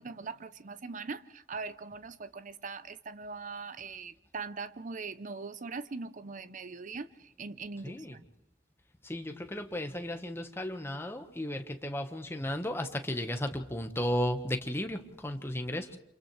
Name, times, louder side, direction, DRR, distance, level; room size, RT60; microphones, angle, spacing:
voice 1, 0.0-8.2, right 4 dB, 45° right, 0.7 m, -41 dB
voice 2, 7.8-8.2 9.0-16.0, left 1 dB, 15° left, 1.2 m, -34 dB
29.5 x 27.0 x 3.2 m
head